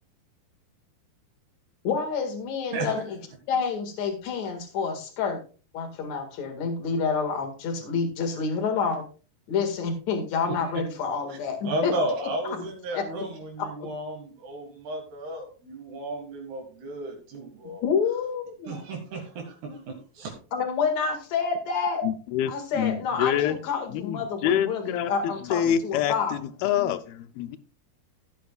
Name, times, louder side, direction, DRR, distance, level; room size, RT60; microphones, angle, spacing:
voice 1, 1.8-3.0 3.5-5.4 5.7-9.0 9.5-11.9 12.5-12.6 12.9-13.0 13.6-13.9 17.8-18.8 20.5-22.0 22.5-26.4, left 5 dB, 50° left, 5 dB, 2.7 m, -28 dB
voice 2, 11.6-17.8 18.7-20.3, right 2 dB, 70° right, 1 dB, 3.9 m, -33 dB
voice 3, 22.0-23.6 23.9-27.6, left 10 dB, 80° left, 12 dB, 2.4 m, -27 dB
15.5 x 8.8 x 2.4 m, 0.36 s
omnidirectional pair, 4.7 m